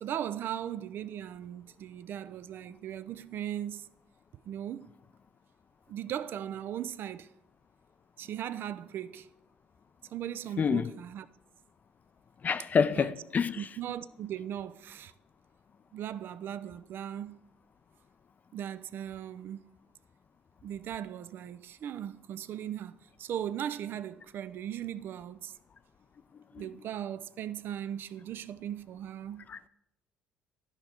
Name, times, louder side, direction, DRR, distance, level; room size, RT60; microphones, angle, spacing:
voice 1, 0.0-3.9 4.4-4.9 5.9-7.3 8.2-9.3 10.1-11.3 13.0-13.1 13.6-15.1 15.9-17.4 18.5-19.6 20.6-25.6 26.6-29.5, right 10 dB, 55° right, 0.4 m, -38 dB
voice 2, 10.6-10.9 12.4-13.7 26.5-26.7 29.5-29.7, left 6 dB, 40° left, 0.4 m, -28 dB
11.5 x 5.4 x 4.4 m
hypercardioid pair, 60°, 4 cm